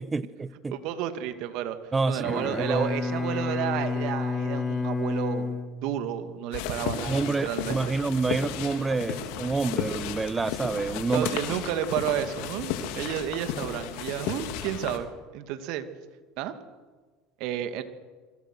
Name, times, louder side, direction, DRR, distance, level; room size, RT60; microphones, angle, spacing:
voice 1, 0.0-0.8 1.9-2.4 2.7-2.9 7.1-11.3, right 3 dB, 20° right, 15 dB, 1.3 m, -28 dB
voice 2, 0.7-1.8 2.1-5.5 5.8-7.8 11.1-15.9 16.4-16.5 17.4-17.8, right 10 dB, 65° right, 9 dB, 2.5 m, -31 dB
Bowed string instrument, 2.1-6.5, left 4 dB, 20° left, 2.7 m, -30 dB
sound 1, 6.5-15.0, left 8 dB, 70° left, 3.4 m, -34 dB
28.0 x 24.5 x 6.4 m, 1.4 s
hypercardioid pair, 80°, 0 cm